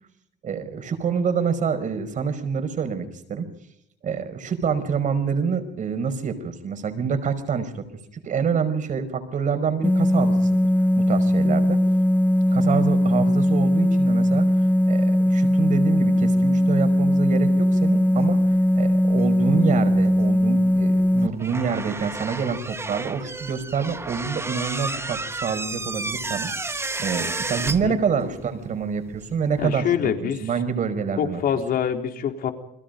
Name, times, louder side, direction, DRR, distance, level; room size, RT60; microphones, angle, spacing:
voice 1, 0.4-3.5 4.0-7.9 8.1-10.5 11.0-11.8 12.5-14.5 14.9-29.9 30.2-31.4, right 6 dB, 50° right, 9 dB, 5.3 m, -27 dB
sound 1, 9.8-21.3, equal, 10° left, 1.4 m, -19 dB
sound 2, 18.2-20.0 20.3-28.6 28.8-29.7, right 3 dB, 15° right, 1.5 m, -32 dB
voice 2, 27.6-27.9 29.6-30.5 31.2-32.5, left 8 dB, 60° left, 5 dB, 3.8 m, -25 dB
30.0 x 22.0 x 5.3 m, 0.78 s
cardioid pair, 110°, 17 cm